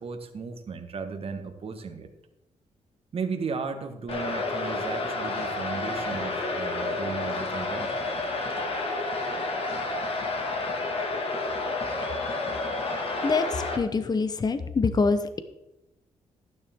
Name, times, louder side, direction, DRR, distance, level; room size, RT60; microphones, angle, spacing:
voice 1, 0.0-2.1 3.1-7.9, right 5 dB, 50° right, 6 dB, 1.4 m, -35 dB
sound 1, 4.1-13.8, left 2 dB, 50° left, 1.9 m, -30 dB
voice 2, 13.2-15.4, left 4 dB, 35° left, 10 dB, 0.8 m, -25 dB
12.0 x 9.8 x 3.6 m, 0.95 s
cardioid pair, 85°, 12 cm